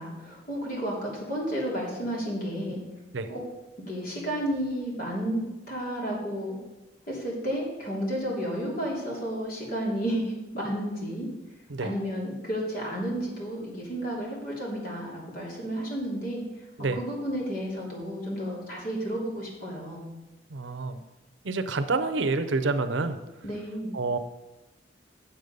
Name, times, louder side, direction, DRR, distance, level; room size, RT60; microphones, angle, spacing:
voice 1, 0.0-2.8 3.3-3.4 3.9-5.4 5.7-6.6 7.1-11.3 11.8-16.4 16.9-20.1 23.4-23.9, equal, 50° left, -4 dB, 3.0 m, -32 dB
voice 2, 20.5-21.0 21.4-23.2 23.9-24.2, right 3 dB, 85° right, 9 dB, 0.7 m, -28 dB
8.0 x 7.2 x 5.3 m, 1.0 s
head